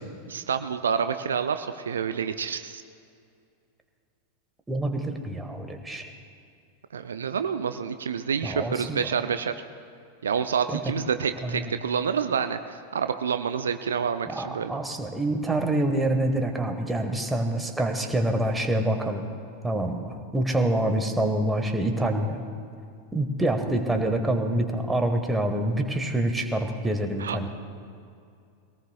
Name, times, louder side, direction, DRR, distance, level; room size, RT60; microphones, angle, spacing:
voice 1, 0.3-2.8 6.9-9.5 10.2-14.7 27.2-27.5, right 7 dB, 65° right, 9 dB, 0.5 m, -28 dB
voice 2, 4.7-6.0 8.4-9.0 10.7-10.8 11.4-11.7 14.3-19.2 19.6-22.4 23.1-27.5, right 1 dB, 10° right, 5 dB, 1.5 m, -26 dB
23.0 x 18.0 x 2.4 m, 2.4 s
figure-of-eight pair, 90°, 0 cm